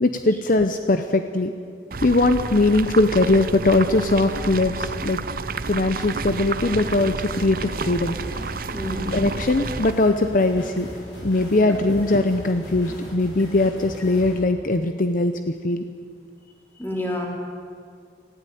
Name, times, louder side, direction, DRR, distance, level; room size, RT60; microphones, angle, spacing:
voice 1, 0.0-1.5 2.0-5.2 5.7-8.2 9.1-10.9 11.2-15.3 15.6-15.8, left 2 dB, 50° left, 8 dB, 0.8 m, -20 dB
sound 1, 1.9-9.9, right 4 dB, 55° right, 0.7 m, -30 dB
sound 2, 6.1-14.3, equal, 80° left, 7.9 m, -38 dB
voice 2, 8.7-9.2 11.7-11.8 16.8-17.3, left 1 dB, 10° left, -1 dB, 3.6 m, -28 dB
19.0 x 15.5 x 9.3 m, 2.2 s
head